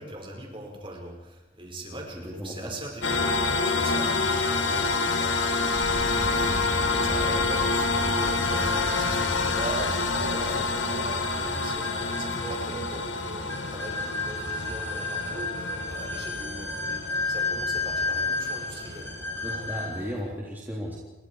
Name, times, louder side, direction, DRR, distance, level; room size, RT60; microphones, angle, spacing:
voice 1, 0.0-3.3 3.6-5.5 5.8-19.7, right 2 dB, 25° right, 1 dB, 5.4 m, -41 dB
voice 2, 1.9-2.7 19.4-21.0, equal, 10° right, -5 dB, 3.5 m, -35 dB
sound 1, 3.0-20.1, left 3 dB, 70° left, 2.3 m, -28 dB
sound 2, 5.7-12.0, equal, 90° right, 6.9 m, -37 dB
sound 3, 8.2-20.1, left 3 dB, 15° left, 3.8 m, -33 dB
29.0 x 23.0 x 4.9 m, 1.1 s
head